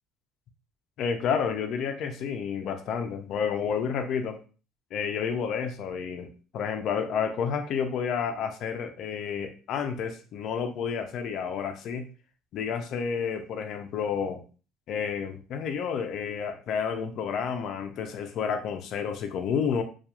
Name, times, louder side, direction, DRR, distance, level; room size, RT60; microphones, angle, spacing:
voice 1, 1.0-4.4 4.9-6.3 6.5-12.0 12.5-14.4 14.9-19.8, left 6 dB, 60° left, 6 dB, 0.4 m, -30 dB
2.8 x 2.3 x 2.3 m, 0.36 s
supercardioid pair, 100°, 0 cm